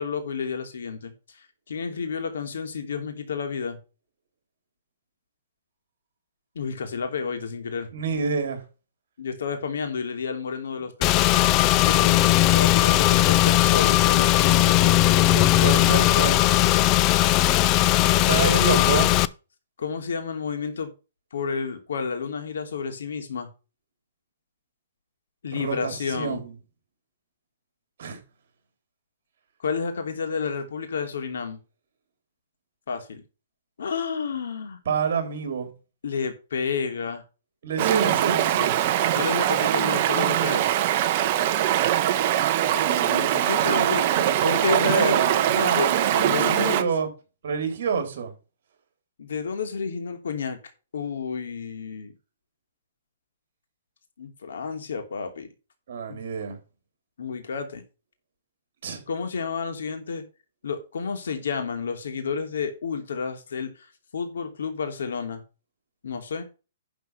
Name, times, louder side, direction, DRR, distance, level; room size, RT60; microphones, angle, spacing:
voice 1, 0.0-3.8 6.5-7.9 9.2-11.3 11.8-15.4 19.8-20.9 21.3-23.5 25.4-26.4 29.6-31.6 32.9-33.2 33.8-34.8 36.0-37.2 39.1-40.7 42.6-44.0 44.4-45.2 45.5-46.9 49.2-50.6 50.9-52.1 54.2-55.5 56.1-56.2 57.2-57.8 59.1-60.2 60.6-63.9 64.1-65.4 66.0-66.4, left 5 dB, 75° left, 3.0 m, -31 dB
voice 2, 7.9-8.6 15.3-16.7 18.1-19.1 25.5-26.6 28.0-28.2 34.9-35.7 37.6-38.7 43.5-47.1 47.4-48.3 55.9-56.6 58.8-59.0, right 6 dB, 55° right, 3.9 m, -27 dB
Car / Engine, 11.0-19.3, left 15 dB, 25° left, 0.4 m, -18 dB
Stream, 37.8-46.8, right 12 dB, 35° right, 1.0 m, -22 dB
11.5 x 4.7 x 5.7 m
hypercardioid pair, 165°, 0 cm